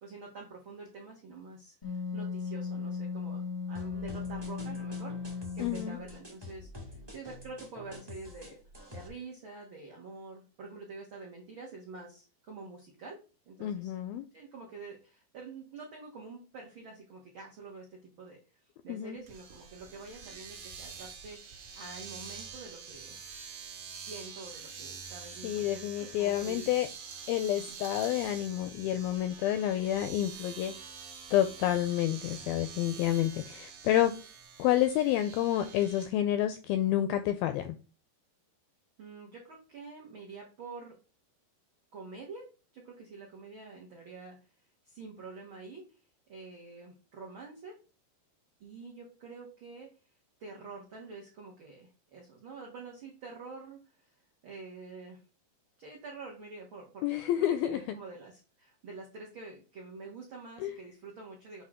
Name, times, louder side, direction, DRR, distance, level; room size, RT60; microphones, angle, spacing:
voice 1, 0.0-8.6 8.9-13.2 13.5-14.0 14.3-18.4 18.8-23.2 23.9-26.6 27.5-27.8 39.0-40.9 41.9-42.5 42.7-44.4 44.9-45.8 46.3-47.8 48.6-49.9 50.4-53.8 54.4-55.2 55.8-61.6, right 4 dB, 80° right, 1.1 m, -47 dB
Wind instrument woodwind instrument, 1.8-6.2, left 5 dB, 20° left, 0.7 m, -37 dB
sound 1, 3.7-9.1, left 2 dB, 25° right, 0.5 m, -48 dB
voice 2, 5.6-6.0 13.6-14.3 18.9-19.2 25.4-26.9 27.3-30.7 31.3-34.1 34.6-37.8 57.0-57.8 60.6-60.7, left 12 dB, 85° left, 2.1 m, -29 dB
Domestic sounds home sounds, 19.3-36.1, right 6 dB, 60° right, 2.4 m, -46 dB
8.1 x 2.8 x 5.0 m
omnidirectional pair, 4.8 m